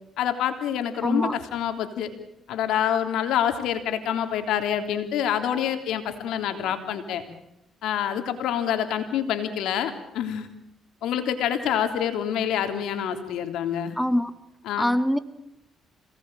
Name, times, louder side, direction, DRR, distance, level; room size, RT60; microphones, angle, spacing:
voice 1, 0.2-2.1 2.5-7.2 7.8-10.5 11.0-14.0 14.6-14.8, left 9 dB, 85° left, 8 dB, 3.3 m, -27 dB
voice 2, 1.0-1.3 14.0-14.3 14.8-15.2, equal, ahead, 12 dB, 1.4 m, -23 dB
27.0 x 18.5 x 9.0 m, 0.84 s
cardioid pair, 90°, 0 cm